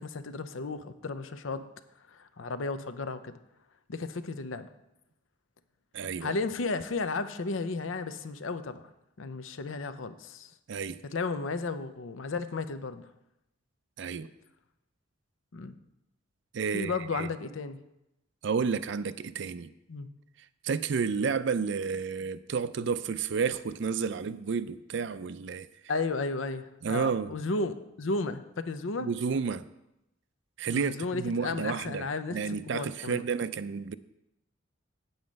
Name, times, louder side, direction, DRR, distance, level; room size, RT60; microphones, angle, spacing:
voice 1, 0.0-1.6 2.1-3.3 3.9-4.7 6.2-8.9 9.2-10.5 11.1-13.1 15.5-15.7 16.7-17.8 19.9-20.1 25.9-29.1 30.7-33.2, left 3 dB, 80° left, 0.7 m, -34 dB
voice 2, 5.9-6.3 10.7-11.0 14.0-14.3 16.5-17.3 18.4-19.7 20.6-25.7 26.8-27.3 29.0-29.7 30.6-33.9, right 5 dB, 60° right, 0.4 m, -31 dB
8.6 x 7.9 x 5.2 m
head